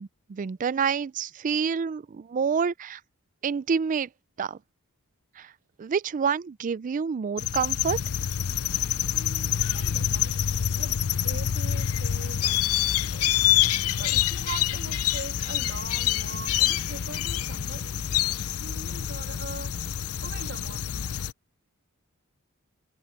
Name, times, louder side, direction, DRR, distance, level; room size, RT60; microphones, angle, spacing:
voice 1, 0.0-3.0 3.4-4.1 4.4-4.6 5.4-5.5 5.8-8.0, right 6 dB, 35° right, 0.3 m, -28 dB
sound 1, 7.4-21.3, left 10 dB, 75° left, 0.6 m, -26 dB
voice 2, 9.1-10.4 10.8-13.3 14.0-17.9 18.6-19.8 20.2-21.2, right 4 dB, 55° right, 2.7 m, -42 dB
head